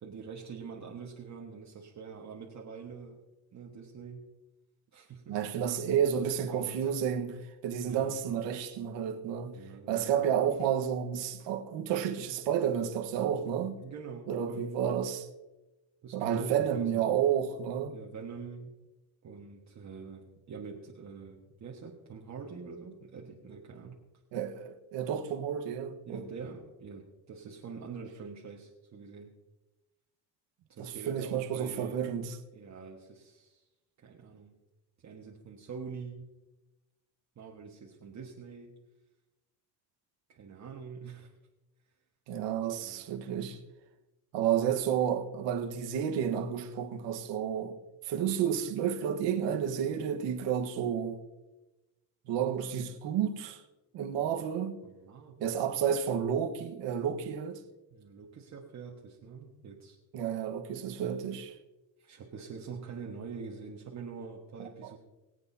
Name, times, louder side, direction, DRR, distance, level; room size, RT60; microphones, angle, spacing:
voice 1, 0.0-3.2 3.5-4.2 4.9-5.4 6.1-7.0 7.9-8.2 9.5-10.1 13.8-14.7 16.0-17.0 17.9-18.7 19.2-24.0 26.1-29.3 30.7-32.0 32.5-33.6 34.0-34.6 35.0-36.4 37.3-38.8 40.3-41.3 42.8-43.1 54.2-54.4 54.8-55.6 57.9-60.0 62.0-65.0, right 5 dB, 40° right, 1.5 m, -45 dB
voice 2, 5.3-9.6 9.9-13.8 14.3-15.3 16.1-17.9 24.3-26.2 30.8-32.4 42.3-43.6 44.3-47.8 48.0-51.2 52.3-53.6 53.9-54.8 55.4-57.6 60.1-61.6, right 8 dB, 85° right, 1.4 m, -31 dB
23.0 x 8.2 x 2.8 m
cardioid pair, 120°, 42 cm